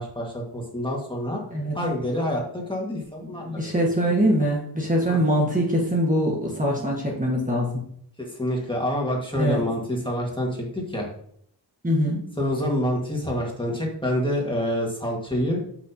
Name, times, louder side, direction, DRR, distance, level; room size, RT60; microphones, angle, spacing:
voice 1, 0.0-1.4 1.7-3.7 5.1-5.2 8.2-11.1 12.4-15.6, equal, 10° left, -2 dB, 1.5 m, -27 dB
voice 2, 3.4-7.8 9.4-9.6 11.8-12.2, equal, 20° right, -3 dB, 1.3 m, -23 dB
7.3 x 6.0 x 2.7 m, 0.66 s
wide cardioid pair, 155°, 42 cm